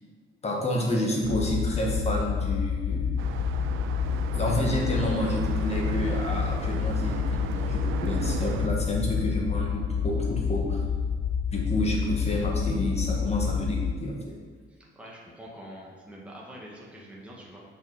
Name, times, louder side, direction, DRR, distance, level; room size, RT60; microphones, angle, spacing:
voice 1, 0.4-3.1 4.3-10.8 11.5-14.4, left 1 dB, 30° left, -1 dB, 1.7 m, -29 dB
sound 1, 1.2-13.9, left 7 dB, 50° left, 0.5 m, -28 dB
sound 2, 3.2-8.7, right 8 dB, 85° right, 0.4 m, -36 dB
voice 2, 14.7-17.6, equal, 5° right, -4 dB, 1.4 m, -45 dB
6.7 x 5.4 x 4.2 m, 1.5 s
cardioid pair, 90°, 20 cm